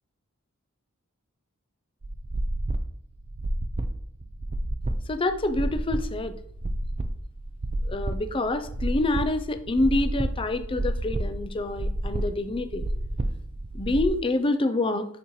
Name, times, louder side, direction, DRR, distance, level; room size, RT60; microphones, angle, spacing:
sound 1, 2.0-14.1, right 1 dB, 30° right, 0.5 m, -30 dB
voice 1, 5.1-6.3 7.8-12.9 13.7-15.0, left 2 dB, 25° left, 9 dB, 0.5 m, -27 dB
9.0 x 4.3 x 3.1 m, 0.67 s
head